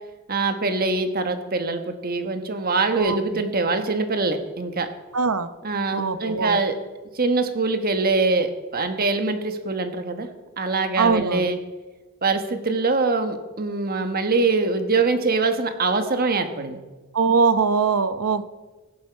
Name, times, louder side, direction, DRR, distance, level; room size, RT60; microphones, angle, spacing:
voice 1, 0.3-4.9 5.6-6.8 7.1-10.3 10.6-11.6 12.2-16.8, right 3 dB, 45° right, 7 dB, 1.3 m, -23 dB
voice 2, 5.1-5.5 5.9-6.6 11.0-11.5 17.1-18.4, right 5 dB, 80° right, 12 dB, 0.9 m, -21 dB
16.0 x 11.0 x 4.7 m, 1.2 s
head